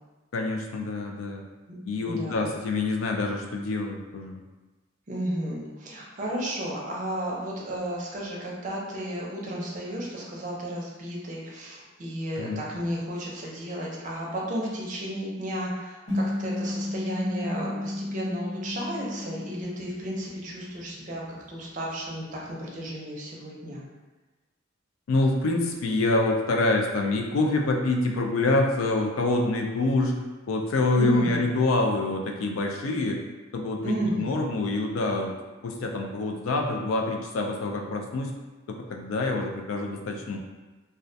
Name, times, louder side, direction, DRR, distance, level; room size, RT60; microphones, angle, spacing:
voice 1, 0.3-1.4 1.8-4.4 12.4-12.6 25.1-30.2 30.5-33.2 33.5-35.4 35.6-38.3 38.7-40.4, left 2 dB, 90° left, 2 dB, 0.4 m, -26 dB
voice 2, 1.7-2.5 5.1-23.9 31.0-31.4 33.8-34.4, right 1 dB, 40° right, -3 dB, 0.4 m, -33 dB
sound 1, 16.1-20.7, left 1 dB, 30° left, 0.8 m, -33 dB
2.3 x 2.1 x 2.6 m, 1.2 s
head